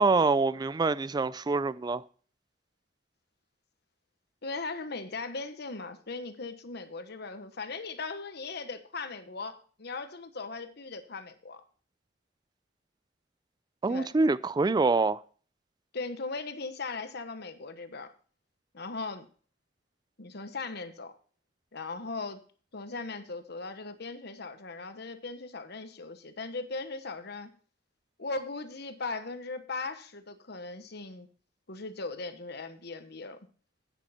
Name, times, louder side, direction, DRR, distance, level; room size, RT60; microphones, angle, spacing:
voice 1, 0.0-2.0 13.8-15.2, right 3 dB, 25° right, 0.3 m, -25 dB
voice 2, 4.4-11.6 13.9-14.1 15.9-18.1 18.7-19.3 20.2-21.1 21.7-22.4 22.7-27.5 28.2-31.3 31.7-33.4, left 3 dB, 60° left, 1.1 m, -38 dB
9.8 x 9.1 x 4.3 m
head